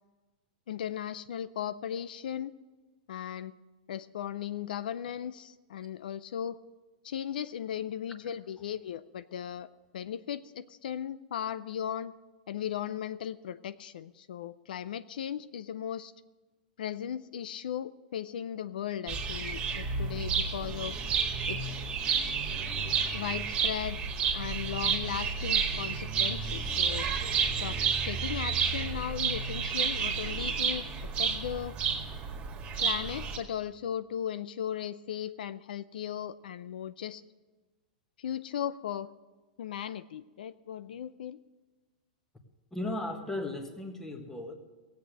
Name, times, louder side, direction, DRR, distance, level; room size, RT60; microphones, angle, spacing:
voice 1, 0.7-2.5 3.1-3.5 3.9-6.6 7.0-9.7 9.9-12.1 12.5-16.1 16.8-21.0 21.5-21.7 23.1-24.0 24.3-27.1 27.6-30.8 31.2-31.7 32.8-37.2 38.2-39.1 39.6-41.4, left 9 dB, 80° left, 14 dB, 0.5 m, -37 dB
sound 1, 19.1-33.4, right 6 dB, 25° right, 1.9 m, -31 dB
voice 2, 42.7-44.5, left 2 dB, 10° left, 5 dB, 1.6 m, -36 dB
16.0 x 8.2 x 7.6 m, 1.3 s
hypercardioid pair, 140°, 5 cm